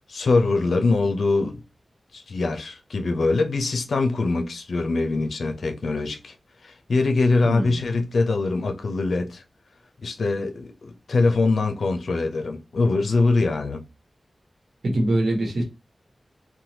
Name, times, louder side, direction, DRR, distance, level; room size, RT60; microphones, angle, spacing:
voice 1, 0.1-1.6 2.1-6.4 6.6-9.4 10.0-13.8, left 3 dB, 85° left, 0.5 m, -23 dB
voice 2, 7.4-7.8 14.8-15.6, right 1 dB, 75° right, 1.1 m, -23 dB
3.0 x 2.2 x 2.7 m
cardioid pair, 45°, 0 cm